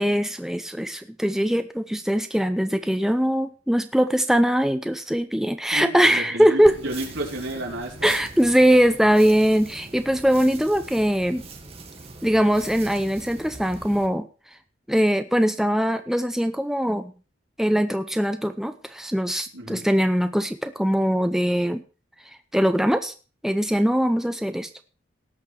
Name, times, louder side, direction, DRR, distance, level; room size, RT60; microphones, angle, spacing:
voice 1, 0.0-6.8 8.0-11.4 12.2-14.3 14.9-17.1 17.6-21.8 22.5-23.1 23.4-24.7, equal, ahead, 9 dB, 0.6 m, -21 dB
voice 2, 5.7-8.3 19.5-19.9, right 1 dB, 85° right, -1 dB, 4.1 m, -32 dB
sound 1, 6.6-14.1, right 3 dB, 30° right, 1.7 m, -42 dB
18.0 x 6.3 x 4.7 m, 0.35 s
head